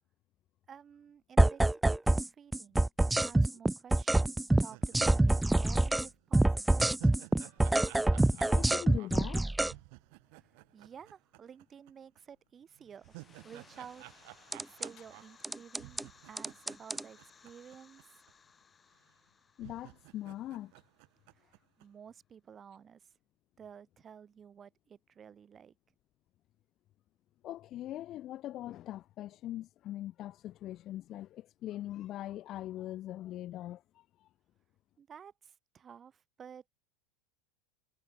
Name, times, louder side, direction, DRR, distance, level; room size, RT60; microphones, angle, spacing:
voice 1, 0.7-2.8 3.2-7.0 10.3-13.1 13.4-14.0 14.6-18.2 21.4-23.1 23.6-25.7 35.0-36.7, right 7 dB, 25° right, 7.6 m, -53 dB
sound 1, 1.4-2.3 2.5-6.1 6.3-9.7 14.5-14.9 15.4-16.0 16.4-17.0, right 2 dB, 5° right, 0.4 m, -26 dB
sound 2, 4.6-11.9 12.2-12.3 12.7-18.0 18.3-18.4 19.1-19.2 19.6-21.8, right 38 dB, 55° right, 4.7 m, -55 dB
voice 2, 8.3-9.4 19.6-20.7 27.4-34.3, left 13 dB, 40° left, 1.5 m, -41 dB
sound 3, 12.9-21.5, left 5 dB, 20° left, 5.0 m, -62 dB
figure-of-eight pair, 80°, 0 cm